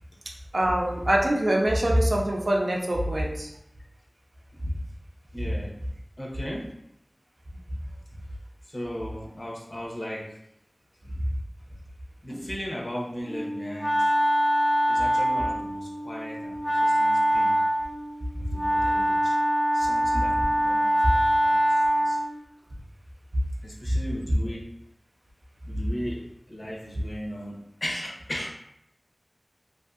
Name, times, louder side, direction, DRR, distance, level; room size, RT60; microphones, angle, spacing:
voice 1, 0.5-3.5 23.8-24.0, right 1 dB, 80° right, -1 dB, 0.5 m, -24 dB
voice 2, 5.3-5.7 6.2-6.7 8.7-10.4 12.2-14.1 14.9-17.5 18.5-19.4 19.7-22.2 23.6-24.6 25.7-26.2 26.5-28.5, equal, 60° left, -3 dB, 0.7 m, -37 dB
Wind instrument woodwind instrument, 13.3-22.4, equal, 10° left, 0.4 m, -24 dB
2.6 x 2.6 x 2.4 m, 0.78 s
wide cardioid pair, 45°, 0 cm